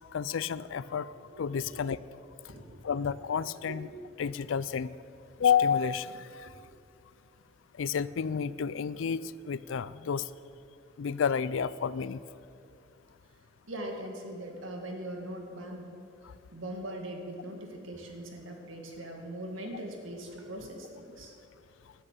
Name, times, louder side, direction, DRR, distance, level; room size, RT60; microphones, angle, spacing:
voice 1, 0.1-2.0 2.8-3.9 4.2-4.9 5.4-6.5 7.8-10.3 11.0-12.2, left 7 dB, 70° left, 18 dB, 0.4 m, -30 dB
voice 2, 2.5-2.8 3.7-4.0 13.7-15.9 16.5-21.3, right 1 dB, 80° right, 2 dB, 2.1 m, -41 dB
12.5 x 7.9 x 8.4 m, 2.5 s
head